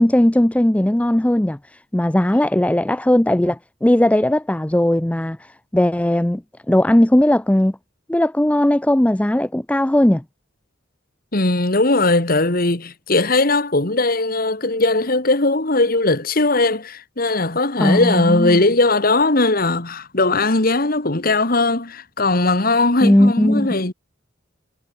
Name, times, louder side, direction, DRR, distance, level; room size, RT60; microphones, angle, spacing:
voice 1, 0.0-1.6 1.9-5.4 5.7-6.4 6.7-7.7 8.1-10.2 17.8-18.6 23.0-23.7, left 1 dB, 5° left, 0.4 m, -17 dB
voice 2, 11.3-23.9, left 2 dB, 45° left, 2.0 m, -19 dB
head